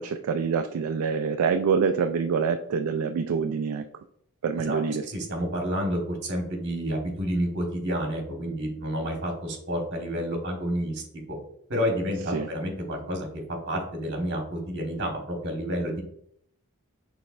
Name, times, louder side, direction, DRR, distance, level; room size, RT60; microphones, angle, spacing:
voice 1, 0.0-3.8 4.4-5.0 12.3-12.5, right 6 dB, 70° right, 7 dB, 0.3 m, -26 dB
voice 2, 4.7-11.0 11.3-11.4 11.7-13.3 13.7-16.0, equal, 50° right, 1 dB, 1.3 m, -29 dB
6.1 x 3.3 x 2.5 m, 0.69 s
head